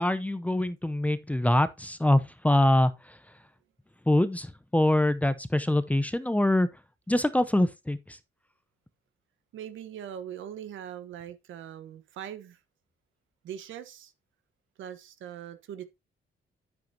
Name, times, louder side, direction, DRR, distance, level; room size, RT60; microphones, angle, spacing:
voice 1, 0.0-3.2 4.1-6.7 7.1-8.0, left 1 dB, 5° left, 0.7 m, -24 dB
voice 2, 9.5-12.6 13.4-14.1 14.8-15.8, right 9 dB, 80° right, 1.3 m, -41 dB
9.1 x 7.6 x 2.8 m
cardioid pair, 90°, 20 cm